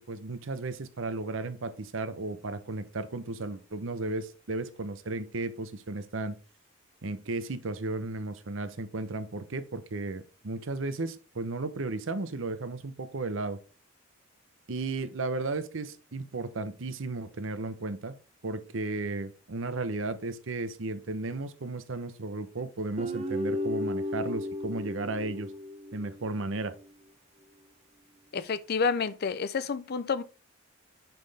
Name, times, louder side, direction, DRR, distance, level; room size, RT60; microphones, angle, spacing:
voice 1, 0.1-6.4 7.0-13.6 14.7-18.2 18.4-25.5 25.9-26.7, right 2 dB, 65° right, 0.8 m, -34 dB
Guitar, 23.0-26.3, left 1 dB, 30° right, 0.7 m, -34 dB
voice 2, 28.3-30.2, left 5 dB, 50° left, 0.5 m, -29 dB
5.9 x 5.5 x 3.4 m
head